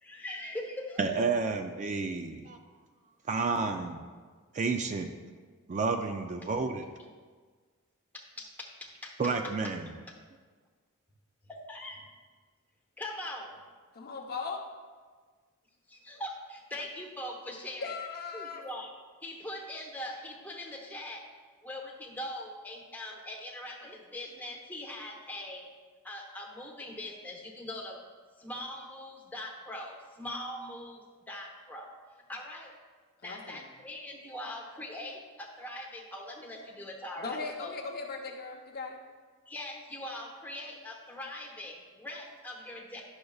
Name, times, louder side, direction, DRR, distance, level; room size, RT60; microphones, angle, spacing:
voice 1, 0.0-1.0 2.0-2.1 8.1-9.7 11.5-12.0 13.0-13.6 15.9-17.9 18.3-18.9 19.2-21.3 21.6-25.7 26.0-28.0 28.4-31.9 32.3-32.7 33.2-37.7 39.5-43.0, left 1 dB, 10° left, -1 dB, 1.0 m, -42 dB
voice 2, 1.0-2.6 3.3-4.0 4.5-5.1 5.7-6.8 9.2-9.9, right 4 dB, 35° right, 6 dB, 0.3 m, -30 dB
voice 3, 13.9-14.6 17.8-18.6 33.2-33.6 37.2-39.0, left 4 dB, 45° left, 1 dB, 0.7 m, -38 dB
10.5 x 6.4 x 2.3 m, 1.5 s
head